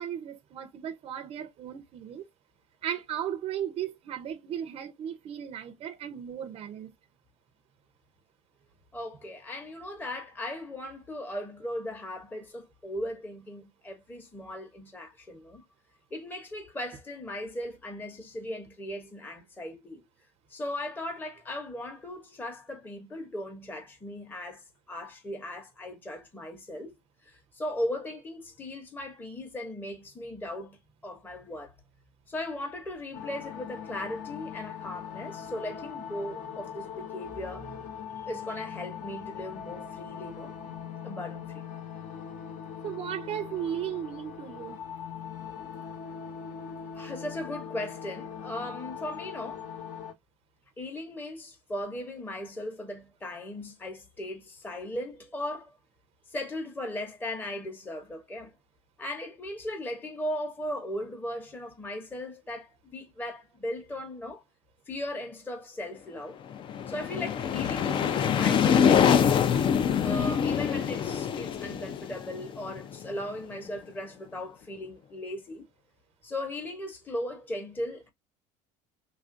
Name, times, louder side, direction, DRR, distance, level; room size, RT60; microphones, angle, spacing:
voice 1, 0.0-2.3 2.8-6.9 42.8-44.8, right 10 dB, 40° right, 0.5 m, -36 dB
voice 2, 8.9-15.6 16.1-20.0 20.5-31.7 32.3-37.7 38.2-40.5 41.0-41.6 46.9-49.7 50.8-55.7 56.3-58.5 59.0-64.4 64.9-66.4 66.9-69.4 70.0-75.7 76.2-78.1, left 1 dB, 10° left, 0.8 m, -37 dB
sound 1, 33.1-50.1, left 7 dB, 50° left, 0.8 m, -41 dB
sound 2, 66.5-73.2, left 8 dB, 30° left, 0.4 m, -25 dB
3.2 x 2.4 x 2.5 m
supercardioid pair, 125°, 16 cm